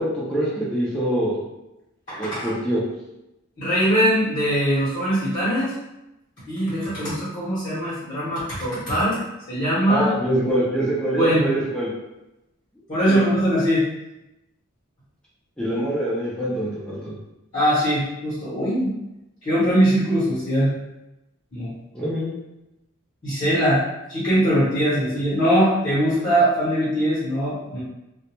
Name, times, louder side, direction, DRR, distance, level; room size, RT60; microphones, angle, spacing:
voice 1, 0.0-1.4 2.2-2.8 9.9-11.9 13.1-13.2 15.6-17.1 21.9-22.3, right 1 dB, 5° left, -8 dB, 0.5 m, -24 dB
voice 2, 2.1-2.4 3.6-5.7 6.5-9.2 9.5-10.1 11.2-11.5 12.9-13.8 17.5-18.9 19.4-20.7 21.5-21.7 23.2-23.8 24.1-27.8, equal, 35° left, -10 dB, 0.9 m, -21 dB
2.4 x 2.1 x 2.9 m, 0.94 s
head